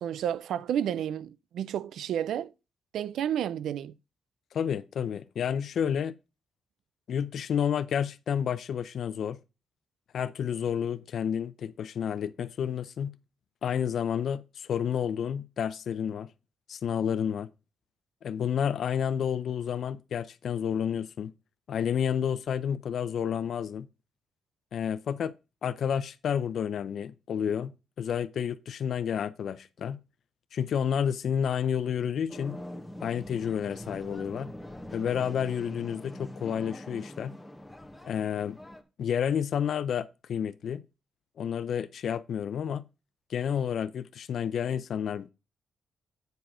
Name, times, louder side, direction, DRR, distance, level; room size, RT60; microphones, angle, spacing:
voice 1, 0.0-2.5 2.9-4.0, right 10 dB, 85° right, 0.4 m, -31 dB
voice 2, 4.5-6.1 7.1-9.4 10.1-13.1 13.6-16.3 16.7-17.5 18.2-21.3 21.7-23.9 24.7-25.3 25.6-27.7 28.0-30.0 30.5-32.6 33.0-34.5 34.9-37.3 38.0-38.6 39.0-40.8 41.4-42.8 43.3-45.3, left 8 dB, 70° left, 0.7 m, -30 dB
sound 1, 32.3-38.8, left 1 dB, 5° left, 1.4 m, -43 dB
9.3 x 4.8 x 4.9 m
cardioid pair, 85°, 0 cm